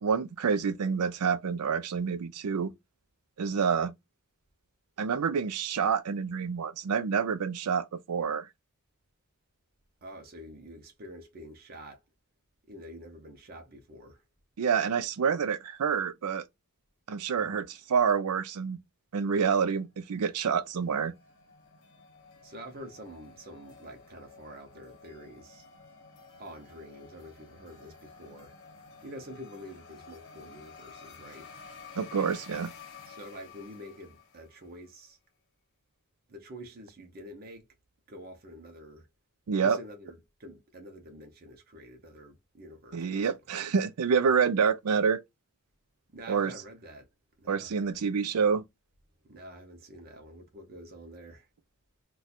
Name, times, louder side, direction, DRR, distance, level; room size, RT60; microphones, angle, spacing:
voice 1, 0.0-2.7 3.4-3.9 5.0-8.5 14.6-16.5 17.1-18.8 19.1-21.1 32.0-32.7 39.5-39.8 42.9-45.2 46.3-46.5 47.5-48.6, right 6 dB, 75° right, 0.4 m, -27 dB
voice 2, 10.0-12.0 12.7-14.2 17.4-17.7 22.4-25.7 26.4-28.5 29.0-31.5 33.1-35.2 36.3-37.6 38.1-39.1 39.6-43.3 46.1-47.1 47.4-47.7 49.2-51.5, equal, 45° right, 0.7 m, -47 dB
sound 1, 20.1-34.8, left 5 dB, 55° left, 0.9 m, -52 dB
2.5 x 2.3 x 4.1 m
head